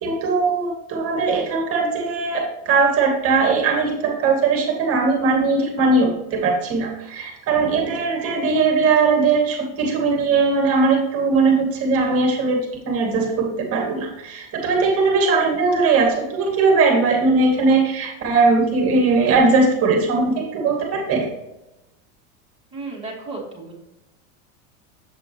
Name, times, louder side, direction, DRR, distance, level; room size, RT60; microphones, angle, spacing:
voice 1, 0.0-21.3, right 4 dB, 35° right, 1 dB, 2.1 m, -19 dB
voice 2, 22.7-23.7, right 3 dB, 15° right, -4 dB, 2.5 m, -33 dB
8.1 x 7.4 x 3.0 m, 0.93 s
supercardioid pair, 145°, 39 cm